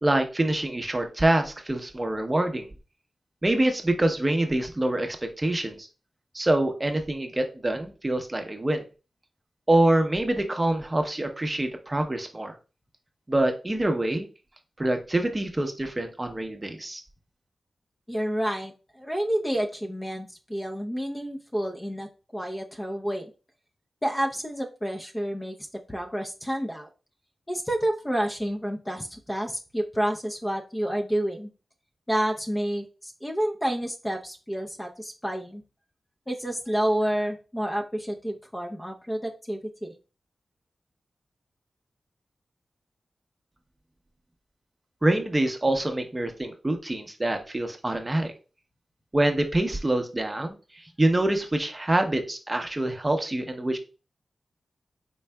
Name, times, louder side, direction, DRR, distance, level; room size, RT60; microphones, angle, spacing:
voice 1, 0.0-2.7 3.4-5.9 6.3-8.8 9.7-12.6 13.3-14.3 14.8-17.0 45.0-48.3 49.1-50.6 51.0-53.8, right 1 dB, 25° right, 5 dB, 0.7 m, -25 dB
voice 2, 18.1-23.2 24.0-25.6 25.9-26.9 27.5-31.5 32.1-35.6 36.3-39.9, equal, 15° left, 1 dB, 0.6 m, -29 dB
4.5 x 3.8 x 2.2 m, 0.33 s
wide cardioid pair, 90°, 0 cm